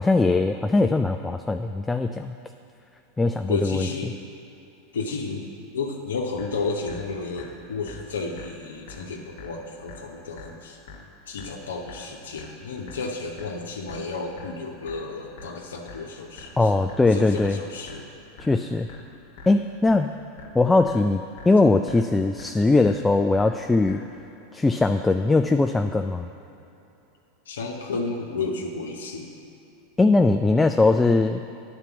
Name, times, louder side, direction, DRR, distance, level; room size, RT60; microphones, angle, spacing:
voice 1, 0.0-2.3 3.2-3.9 16.6-17.6 18.4-18.9 19.5-20.1 20.5-24.0 24.5-26.3 30.0-31.4, left 3 dB, 10° left, 7 dB, 0.3 m, -20 dB
voice 2, 3.5-4.2 4.9-5.5 5.7-10.8 11.3-16.5 17.1-18.1 27.5-29.3, left 4 dB, 85° left, 0 dB, 0.8 m, -32 dB
sound 1, 6.4-24.4, left 3 dB, 70° left, 1.1 m, -46 dB
9.7 x 4.4 x 7.0 m, 2.9 s
hypercardioid pair, 100°, 0 cm